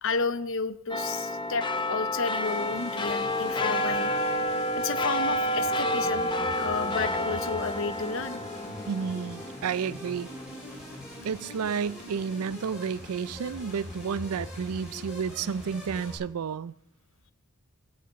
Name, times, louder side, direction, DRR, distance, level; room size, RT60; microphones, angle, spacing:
voice 1, 0.0-4.1 4.7-6.3 6.5-8.4, left 4 dB, 60° left, 0.8 m, -32 dB
sound 1, 0.9-11.7 12.1-12.2, left 1 dB, 20° left, 0.7 m, -30 dB
sound 2, 2.4-16.1, left 1 dB, 5° right, 6.4 m, -43 dB
voice 2, 8.9-10.3 11.2-16.7, right 6 dB, 85° right, 0.4 m, -31 dB
15.5 x 6.4 x 7.9 m
head